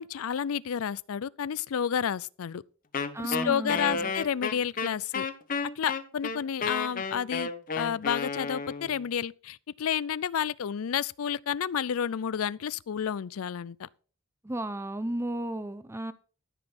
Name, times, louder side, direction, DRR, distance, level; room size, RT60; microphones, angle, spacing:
voice 1, 0.0-2.6 3.2-5.3 5.8-7.5 7.8-13.9, left 8 dB, 90° left, 0.4 m, -30 dB
Wind instrument woodwind instrument, 2.9-9.0, left 5 dB, 40° left, 1.0 m, -32 dB
voice 2, 3.1-4.1 14.4-16.1, right 1 dB, 10° right, 0.6 m, -33 dB
13.0 x 6.1 x 5.2 m
head